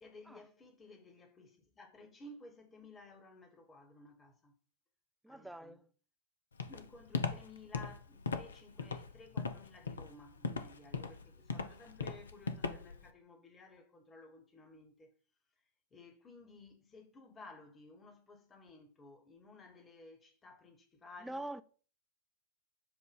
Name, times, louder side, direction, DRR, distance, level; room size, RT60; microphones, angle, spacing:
voice 1, 0.0-4.6 5.3-5.8 6.7-15.1 15.9-21.4, left 2 dB, 20° left, 1.4 m, -56 dB
voice 2, 5.2-5.9 21.2-21.6, right 1 dB, 5° right, 0.4 m, -44 dB
Walk footsteps, 6.6-13.1, left 4 dB, 70° left, 0.5 m, -38 dB
7.3 x 2.5 x 5.4 m
figure-of-eight pair, 90°, 0 cm